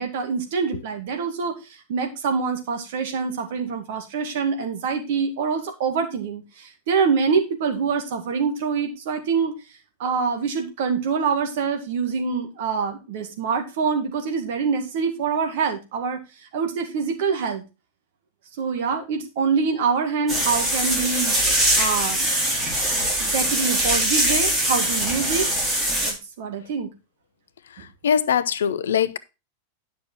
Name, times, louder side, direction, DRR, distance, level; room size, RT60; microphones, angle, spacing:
voice 1, 0.0-9.5 10.0-16.2 16.5-17.6 18.6-21.4 21.8-22.3 23.2-25.5 26.0-26.9 27.8-27.9, right 5 dB, 55° right, 2.1 m, -25 dB
sound 1, 20.3-26.1, right 1 dB, 15° right, 4.5 m, -22 dB
voice 2, 28.0-29.2, left 8 dB, 65° left, 0.6 m, -21 dB
10.0 x 6.3 x 4.3 m
figure-of-eight pair, 90°, 0 cm